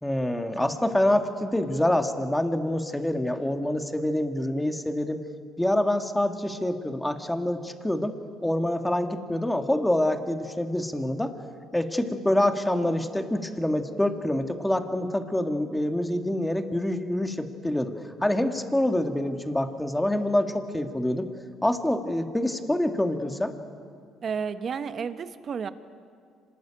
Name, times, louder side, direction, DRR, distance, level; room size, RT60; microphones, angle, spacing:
voice 1, 0.0-5.2 5.6-8.1 8.4-11.3 11.7-17.9 18.2-21.3 21.6-23.5, left 1 dB, 10° left, 6 dB, 2.0 m, -26 dB
voice 2, 24.2-25.7, right 6 dB, 50° right, 11 dB, 1.3 m, -31 dB
25.5 x 20.0 x 9.0 m, 2.3 s
supercardioid pair, 80°, 0 cm